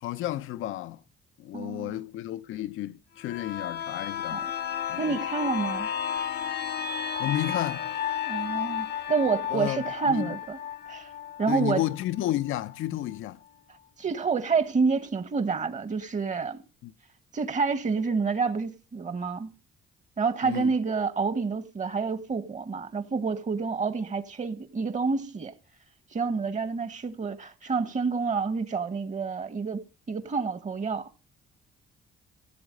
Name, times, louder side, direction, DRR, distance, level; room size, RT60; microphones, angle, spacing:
voice 1, 0.0-1.0 1.4-4.5 4.9-5.2 7.2-7.9 9.5-10.4 11.5-13.4 16.8-16.9 20.4-20.7, left 13 dB, 85° left, 0.7 m, -32 dB
voice 2, 1.5-2.0 4.3-4.5 5.0-5.9 8.3-10.6 10.9-11.1 11.4-11.8 14.0-16.6 17.3-19.5 20.2-25.5 26.1-31.1, right 5 dB, 40° right, 1.4 m, -28 dB
sound 1, 3.2-12.8 13.1-13.2, left 9 dB, 55° left, 0.9 m, -33 dB
16.5 x 8.1 x 5.3 m
cardioid pair, 90°, 20 cm